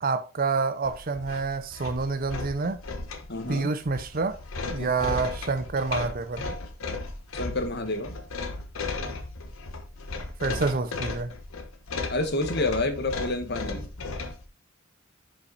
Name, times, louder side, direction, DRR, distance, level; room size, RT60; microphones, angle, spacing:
voice 1, 0.0-2.8 3.5-4.4 4.7-6.5 10.4-11.3, right 4 dB, 40° right, 0.6 m, -28 dB
sound 1, 0.8-14.4, left 3 dB, 75° left, 1.2 m, -35 dB
voice 2, 3.3-3.7 4.8-4.9 7.3-8.2 12.1-13.9, left 2 dB, 50° left, 1.3 m, -29 dB
6.7 x 5.4 x 4.0 m
head